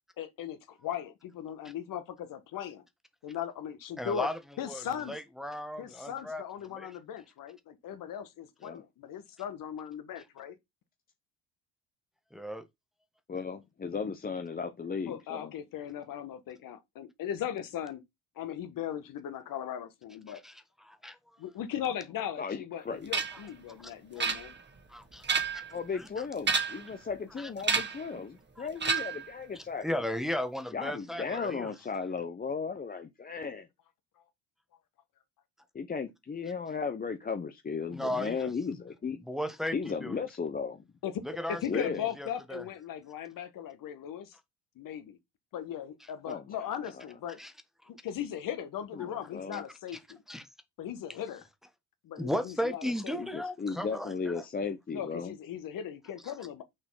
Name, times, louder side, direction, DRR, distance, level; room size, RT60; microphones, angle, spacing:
voice 1, 0.2-2.8 3.2-4.3 4.6-5.1 5.8-10.5 15.0-18.0 18.4-20.4 21.4-24.5 41.0-41.1 41.5-44.3 44.8-45.2 45.5-47.4 47.9-50.2 50.8-51.4 52.0-53.2 54.9-56.6, left 9 dB, 60° left, 1.4 m, -38 dB
voice 2, 4.0-6.9 12.3-12.7 20.3-21.2 23.8-24.3 24.9-25.2 25.5-25.6 25.9-26.1 27.4-27.5 28.1-28.2 28.6-28.7 29.8-31.7 37.9-38.5 39.2-39.7 40.0-40.2 41.2-41.9 42.2-42.6 47.4-47.5 47.8-47.9 49.5-49.6 50.3-50.5 52.2-54.4 56.2-56.3, left 1 dB, ahead, 1.2 m, -36 dB
voice 3, 13.3-15.5 22.4-23.1 25.7-29.8 30.7-33.7 35.7-39.2 39.7-40.8 41.7-42.1 46.3-46.5 48.9-49.6 53.2-55.3, left 5 dB, 25° left, 0.8 m, -35 dB
sound 1, 23.1-23.5 24.2-24.8 25.1-25.7 26.4-26.9 27.6-28.1 28.8-29.3, right 5 dB, 30° right, 1.7 m, -30 dB
6.4 x 3.9 x 4.7 m
supercardioid pair, 75°, 37 cm